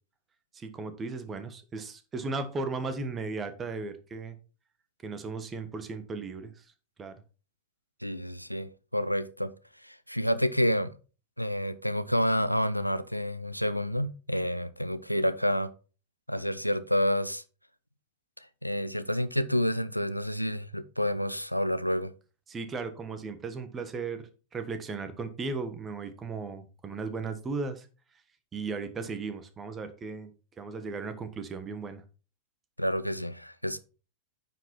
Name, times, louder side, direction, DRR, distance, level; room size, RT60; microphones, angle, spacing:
voice 1, 0.5-4.4 5.0-6.6 7.0-7.2 22.5-27.9 28.5-30.3 30.6-32.0, right 4 dB, 20° right, 1.3 m, -36 dB
voice 2, 8.0-9.5 9.8-10.9 11.4-15.7 16.3-17.4 18.6-22.1 32.8-33.8, equal, 90° left, 0.6 m, -29 dB
9.5 x 5.0 x 4.3 m
figure-of-eight pair, 90°, 0 cm